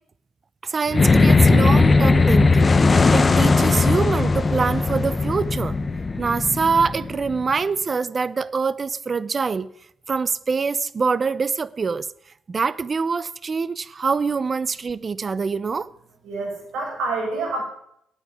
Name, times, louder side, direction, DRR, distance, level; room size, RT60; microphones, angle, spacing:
voice 1, 0.6-5.8 6.2-9.7 10.1-12.1 12.5-15.9, right 5 dB, 35° right, 0.6 m, -24 dB
sound 1, 0.9-7.5, left 3 dB, 30° left, 0.9 m, -18 dB
voice 2, 16.2-17.6, right 3 dB, 80° right, 6.0 m, -27 dB
9.9 x 8.9 x 9.5 m
cardioid pair, 90°, 0 cm